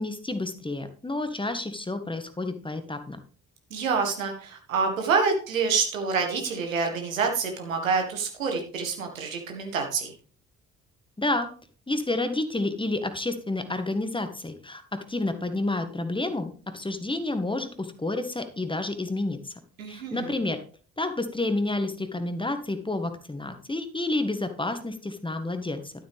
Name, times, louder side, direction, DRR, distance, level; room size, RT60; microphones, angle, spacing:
voice 1, 0.0-3.2 11.2-11.5 11.9-19.5 19.9-20.6 21.0-25.9, left 2 dB, 10° left, 9 dB, 1.6 m, -30 dB
voice 2, 3.7-10.1 19.8-20.3, right 5 dB, 80° right, 3 dB, 1.9 m, -27 dB
12.5 x 7.9 x 3.5 m, 0.40 s
figure-of-eight pair, 45°, 40 cm